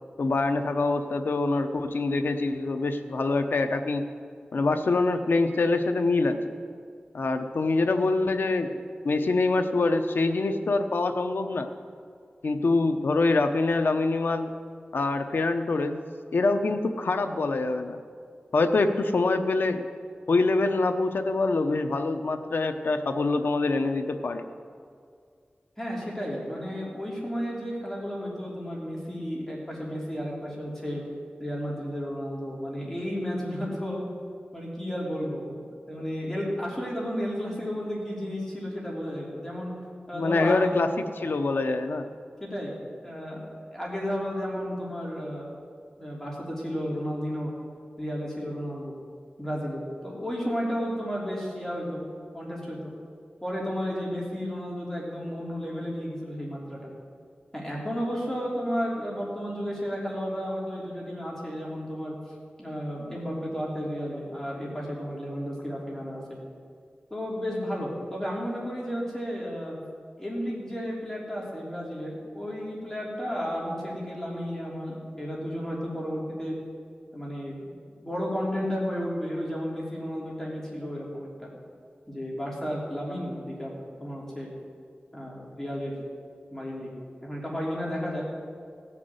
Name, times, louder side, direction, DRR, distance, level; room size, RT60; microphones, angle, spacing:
voice 1, 0.2-4.1 4.5-6.5 7.1-8.8 9.0-11.7 12.4-14.5 14.9-16.0 16.3-18.0 18.5-19.9 20.3-24.4 40.1-42.1, left 3 dB, 85° left, 7 dB, 0.9 m, -25 dB
voice 2, 25.8-31.0 31.4-34.0 34.5-39.7 40.1-40.8 42.4-43.4 43.7-45.5 46.0-47.5 48.0-49.0 49.4-52.0 52.3-52.9 53.4-56.9 57.5-62.2 62.6-66.4 67.1-69.8 70.2-76.6 77.1-77.7 78.0-81.5 82.1-84.5 85.1-85.9 86.5-86.9 87.2-88.3, equal, 15° left, -4 dB, 3.3 m, -33 dB
17.5 x 6.0 x 7.9 m, 2.2 s
wide cardioid pair, 75°, 3 cm